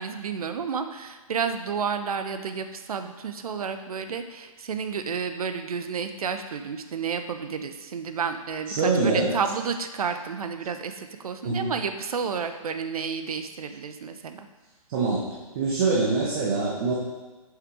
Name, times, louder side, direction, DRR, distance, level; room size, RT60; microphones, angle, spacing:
voice 1, 0.0-14.5, right 6 dB, 70° right, 8 dB, 0.7 m, -31 dB
voice 2, 8.8-9.3 11.4-11.7 14.9-15.3 15.5-16.9, right 3 dB, 35° right, -4 dB, 1.1 m, -24 dB
6.5 x 5.1 x 4.8 m, 1.2 s
hypercardioid pair, 145°, 19 cm